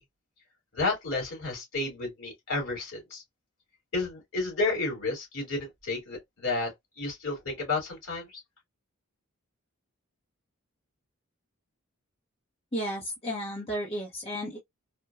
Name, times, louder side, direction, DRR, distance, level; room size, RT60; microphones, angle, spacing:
voice 1, 0.7-3.2 3.9-6.7 7.0-8.4, left 3 dB, 70° left, 2.7 m, -31 dB
voice 2, 12.7-14.6, equal, 25° left, 0.9 m, -33 dB
4.2 x 2.2 x 2.3 m
head